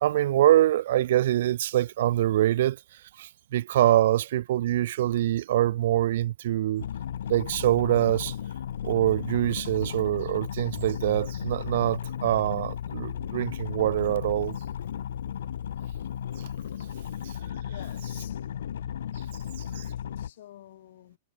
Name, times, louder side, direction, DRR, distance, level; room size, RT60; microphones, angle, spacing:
voice 1, 0.0-2.8 3.2-6.9 7.3-8.3 8.8-14.6 17.2-17.3 19.7-19.9, right 13 dB, 60° right, 0.4 m, -24 dB
sound 1, 6.8-20.3, left 9 dB, 85° left, 0.4 m, -35 dB
voice 2, 17.6-18.5 19.3-21.2, left 13 dB, 60° left, 2.4 m, -50 dB
supercardioid pair, 170°, 0 cm